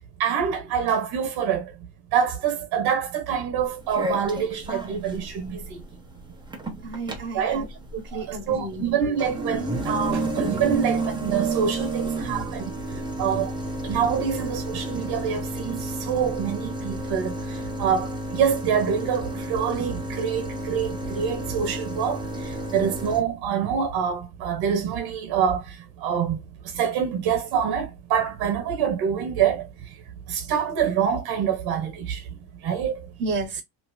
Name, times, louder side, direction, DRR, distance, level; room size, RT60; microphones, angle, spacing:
voice 1, 0.2-1.7 2.1-5.6 7.3-7.7 8.1-12.7 13.2-13.5 13.8-17.3 17.8-22.2 22.7-25.6 26.0-26.4 26.7-29.6 30.3-32.2 32.6-32.9, right 7 dB, 70° right, 1.3 m, -25 dB
sound 1, 3.6-23.2, right 2 dB, 10° right, 0.9 m, -31 dB
voice 2, 6.8-7.7 7.9-8.8 10.5-10.7 33.2-33.6, right 3 dB, 30° right, 1.2 m, -31 dB
2.9 x 2.9 x 3.1 m
cardioid pair, 125°, 40 cm